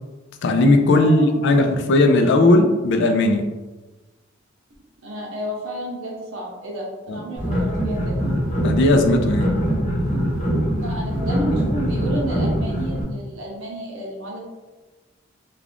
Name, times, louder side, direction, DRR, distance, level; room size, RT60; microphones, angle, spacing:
voice 1, 0.4-3.5 7.1-7.2 8.6-9.6, left 2 dB, 65° left, 5 dB, 0.4 m, -17 dB
voice 2, 0.9-1.6 5.0-8.2 10.7-14.4, right 1 dB, 85° right, -2 dB, 0.8 m, -31 dB
sound 1, 7.4-13.0, equal, 40° left, 0.8 m, -23 dB
2.4 x 2.3 x 3.3 m, 1.2 s
head